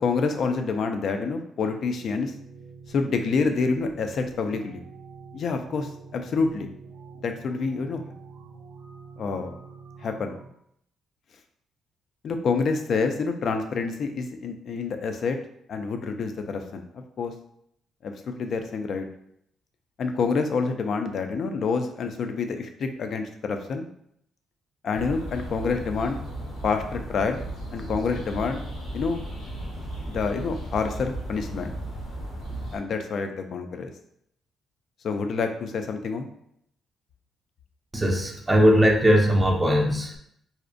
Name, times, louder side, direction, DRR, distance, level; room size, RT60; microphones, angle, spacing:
voice 1, 0.0-2.3 2.9-4.8 5.3-6.7 7.2-8.0 9.2-9.5 10.0-10.3 12.2-15.4 15.7-17.3 18.0-19.1 20.0-23.9 24.8-26.2 26.6-27.4 27.7-28.6 28.9-29.2 30.1-31.7 32.7-33.9 35.0-36.3, left 4 dB, 60° left, 6 dB, 0.3 m, -27 dB
sound 1, 2.0-10.5, right 4 dB, 85° right, 0.4 m, -46 dB
sound 2, 24.9-32.8, right 1 dB, 90° left, 1.0 m, -35 dB
voice 2, 37.9-40.2, equal, 10° right, 0 dB, 0.4 m, -20 dB
2.5 x 2.0 x 2.5 m, 0.72 s
cardioid pair, 90°, 0 cm